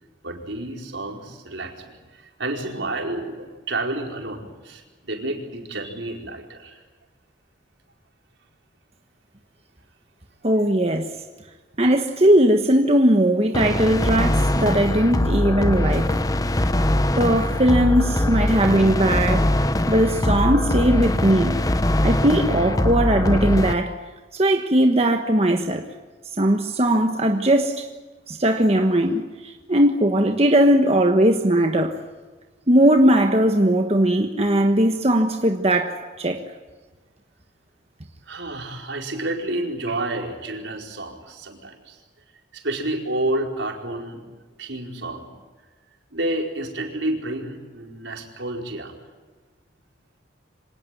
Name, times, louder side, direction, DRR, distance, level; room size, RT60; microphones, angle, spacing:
voice 1, 0.2-6.8 38.3-42.0 42.5-44.3 44.6-45.3 46.1-48.9, right 1 dB, 80° right, 4.8 m, -30 dB
voice 2, 10.4-11.1 11.8-16.1 17.1-19.5 19.9-21.6 22.0-24.0 24.3-25.8 26.4-27.9 28.3-32.0 32.7-36.4, right 1 dB, 35° right, 1.4 m, -19 dB
sound 1, 13.5-23.7, left 1 dB, 20° left, 0.9 m, -22 dB
26.0 x 18.5 x 9.4 m
head